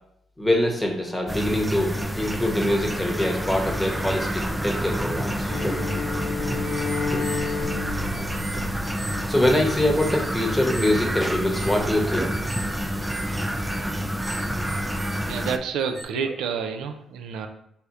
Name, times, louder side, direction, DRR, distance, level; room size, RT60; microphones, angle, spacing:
voice 1, 0.4-5.8 6.1-6.2 6.5-6.6 7.1-7.2 8.6-8.7 9.3-12.3 16.2-16.3, left 1 dB, 5° left, 1 dB, 1.0 m, -24 dB
sound 1, 1.3-15.6, equal, 10° right, 0.3 m, -28 dB
Bowed string instrument, 5.4-9.7, left 5 dB, 70° left, 0.9 m, -31 dB
sound 2, 6.6-16.0, right 3 dB, 50° right, 0.9 m, -40 dB
voice 2, 15.3-17.5, right 6 dB, 85° right, 6 dB, 0.4 m, -29 dB
3.4 x 2.7 x 4.6 m, 0.73 s
cardioid pair, 90°, 0 cm